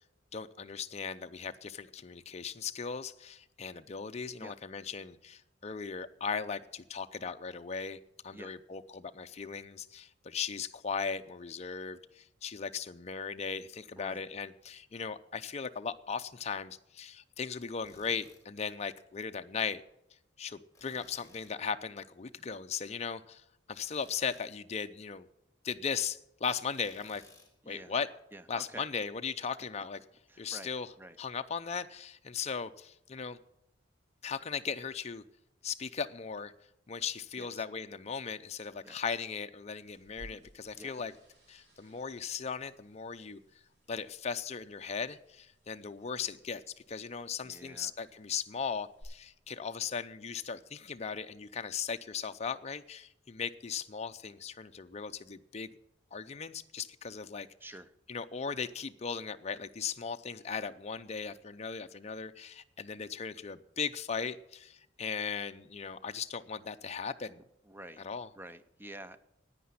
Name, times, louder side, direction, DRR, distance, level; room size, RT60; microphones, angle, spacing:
voice 1, 0.3-19.8 20.4-23.4 23.7-25.3 25.6-27.2 27.7-28.1 28.5-30.0 30.4-30.9 31.2-33.4 34.2-35.2 35.6-36.5 36.9-41.1 41.5-43.4 43.9-46.6 46.9-55.7 56.1-57.5 58.1-67.4 68.0-68.3, left 6 dB, 35° left, 8 dB, 0.5 m, -38 dB
voice 2, 14.0-14.3 27.6-27.9 28.3-28.9 30.3-31.2 37.4-37.6 38.8-39.0 40.7-40.9 47.4-47.9 57.6-57.9 67.7-68.0 68.3-69.2, right 1 dB, 10° right, 11 dB, 0.6 m, -49 dB
Tools, 17.8-18.4 20.7-21.6 23.8-24.5 26.7-27.6, left 3 dB, 15° left, 3.7 m, -59 dB
sound 1, 39.8-49.0, equal, 60° right, 7.2 m, -61 dB
9.9 x 9.4 x 9.7 m, 0.80 s
head